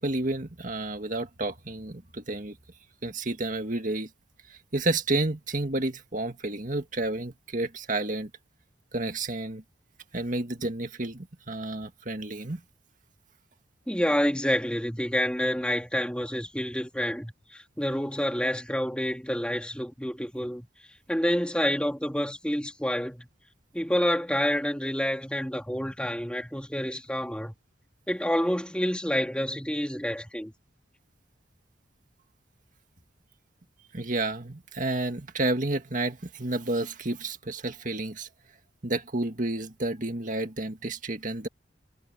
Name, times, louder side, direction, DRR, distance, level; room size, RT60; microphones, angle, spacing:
voice 1, 0.0-2.6 3.0-4.1 4.5-8.3 8.9-9.6 10.1-12.6 33.9-38.3 38.8-41.5, right 2 dB, 45° right, 2.0 m, -30 dB
voice 2, 13.9-20.7 21.1-23.3 23.7-27.5 28.1-30.5, equal, 5° left, 3.4 m, -28 dB
head